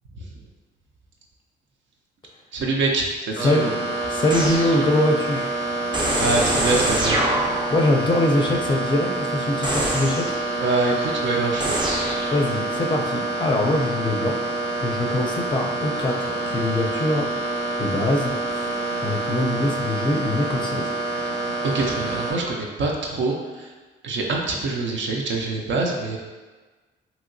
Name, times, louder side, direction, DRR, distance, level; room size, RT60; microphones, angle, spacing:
voice 1, 2.5-3.7 6.2-7.2 10.6-11.8 21.7-23.7 24.0-26.2, right 3 dB, 70° right, 0 dB, 0.5 m, -25 dB
voice 2, 3.4-3.7 4.1-5.5 7.7-10.3 12.3-17.3 17.8-18.7 19.0-20.9, left 1 dB, 25° left, 1 dB, 0.5 m, -23 dB
sound 1, 3.4-22.3, right 2 dB, 85° right, 0.8 m, -27 dB
sound 2, 4.3-5.0 5.9-7.9 9.6-10.4 11.6-12.4, right 1 dB, 25° right, 0.6 m, -25 dB
2.9 x 2.7 x 2.6 m, 1.3 s
cardioid pair, 90°, 20 cm